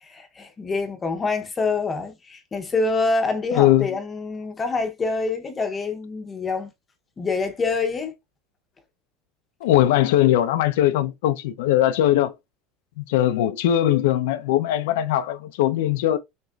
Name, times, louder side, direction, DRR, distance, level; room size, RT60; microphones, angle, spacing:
voice 1, 0.0-6.7 7.2-8.1, left 3 dB, 15° left, 0.7 m, -26 dB
voice 2, 3.5-3.9 9.6-12.3 13.0-16.2, left 13 dB, 75° left, 0.5 m, -20 dB
6.4 x 2.9 x 2.3 m
supercardioid pair, 175°, 0 cm